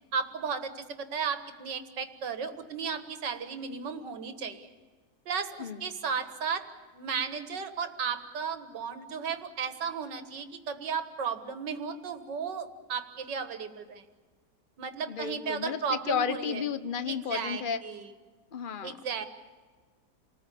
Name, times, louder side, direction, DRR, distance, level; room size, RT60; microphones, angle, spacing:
voice 1, 0.1-4.7 5.3-6.7 6.9-14.0 14.8-16.6 17.1-18.1 18.8-19.3, right 6 dB, 80° right, 9 dB, 2.2 m, -34 dB
voice 2, 15.1-17.8 18.5-19.0, left 7 dB, 40° left, 12 dB, 0.9 m, -32 dB
28.5 x 19.5 x 8.5 m, 1.4 s
omnidirectional pair, 1.9 m